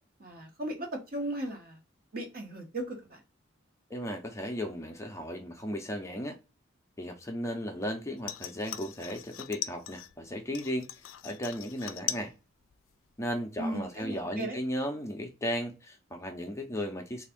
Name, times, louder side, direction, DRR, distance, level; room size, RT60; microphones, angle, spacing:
voice 1, 0.2-1.8 2.1-3.2 13.6-14.6, right 1 dB, 50° right, 1.1 m, -36 dB
voice 2, 3.9-6.4 7.0-10.9 11.2-12.3 13.2-17.2, equal, 15° left, 0.5 m, -35 dB
sound 1, 8.2-10.1 10.5-12.3 12.6-13.2 13.6-13.7, left 12 dB, 75° left, 0.4 m, -39 dB
3.5 x 2.5 x 3.5 m
head